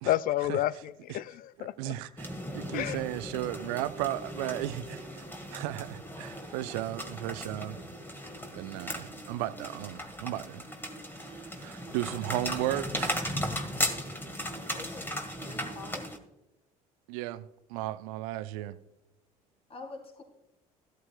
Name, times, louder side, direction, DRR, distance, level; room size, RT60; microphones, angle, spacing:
voice 1, 0.0-1.9 2.7-3.0, left 14 dB, 50° left, 0.4 m, -30 dB
voice 2, 1.6-7.8 8.5-10.6 11.4-13.3 17.1-18.8, right 15 dB, 65° right, 0.6 m, -35 dB
sound 1, 2.2-16.2, equal, 10° left, 1.7 m, -37 dB
voice 3, 14.7-16.1 19.7-20.2, left 3 dB, 30° left, 3.2 m, -45 dB
14.0 x 13.0 x 2.3 m
figure-of-eight pair, 55°, 19 cm